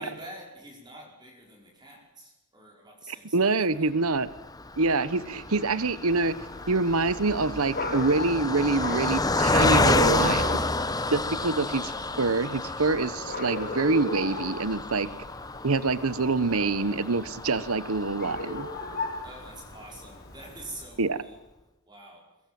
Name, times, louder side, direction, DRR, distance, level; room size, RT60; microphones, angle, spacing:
voice 1, 0.0-3.9 19.2-21.4 21.9-22.3, right 1 dB, 20° right, 0 dB, 5.2 m, -46 dB
voice 2, 3.1-4.3 4.8-6.3 6.7-10.6 11.1-15.1 15.6-18.7 21.0-21.2, right 3 dB, 70° right, 15 dB, 1.1 m, -26 dB
Car passing by, 4.3-19.8 20.3-20.4 20.7-20.8, left 2 dB, 15° left, 1.1 m, -30 dB
sound 1, 6.1-20.9, left 2 dB, 45° left, 4.1 m, -39 dB
23.5 x 21.5 x 7.7 m, 0.91 s
head